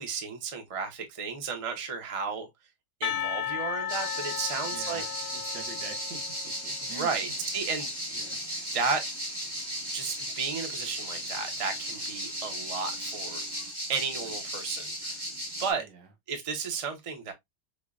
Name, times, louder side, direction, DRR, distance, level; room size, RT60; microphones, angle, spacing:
voice 1, 0.0-2.5 3.0-5.0 6.8-7.9 8.7-9.1 9.8-13.4 13.9-15.2 15.6-15.9 16.3-17.3, right 5 dB, 55° right, 0.3 m, -33 dB
Percussion, 3.0-6.9, left 9 dB, 80° left, 0.7 m, -35 dB
sound 1, 3.9-15.7, equal, 20° right, 0.7 m, -36 dB
voice 2, 4.5-7.1 8.1-8.7 15.8-16.1, right 5 dB, 85° right, 1.6 m, -46 dB
5.1 x 2.2 x 2.4 m
omnidirectional pair, 1.9 m